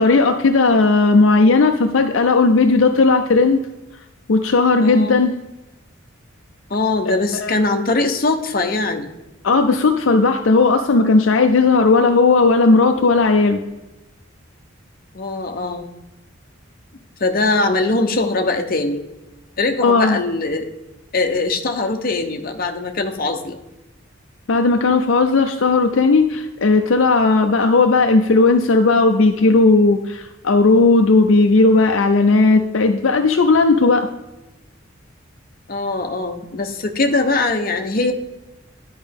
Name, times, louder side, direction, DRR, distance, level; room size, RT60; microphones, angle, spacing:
voice 1, 0.0-3.6 4.3-5.4 7.1-7.2 7.4-7.6 9.4-13.6 19.8-20.2 24.5-34.1, left 3 dB, 70° left, 5 dB, 0.5 m, -15 dB
voice 2, 4.8-5.2 6.7-9.1 15.1-15.9 17.2-19.0 19.6-20.7 21.1-23.6 35.7-38.1, left 3 dB, 45° left, 5 dB, 0.8 m, -21 dB
10.5 x 5.2 x 3.5 m, 1.0 s
head